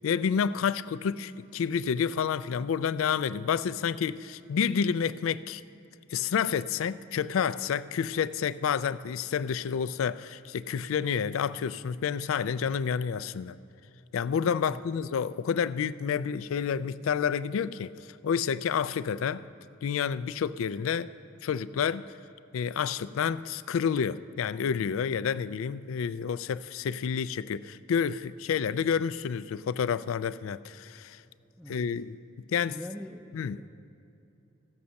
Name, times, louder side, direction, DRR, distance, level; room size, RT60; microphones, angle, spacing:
voice 1, 0.0-5.6 6.1-13.6 14.1-17.9 18.2-19.4 19.8-21.1 21.4-22.1 22.5-31.2 31.7-32.2 32.5-32.8 33.3-33.6, left 7 dB, 70° left, 15 dB, 0.3 m, -29 dB
voice 2, 31.6-31.9 32.7-33.7, left 1 dB, ahead, 0 dB, 0.4 m, -43 dB
15.0 x 6.4 x 7.0 m, 2.8 s
head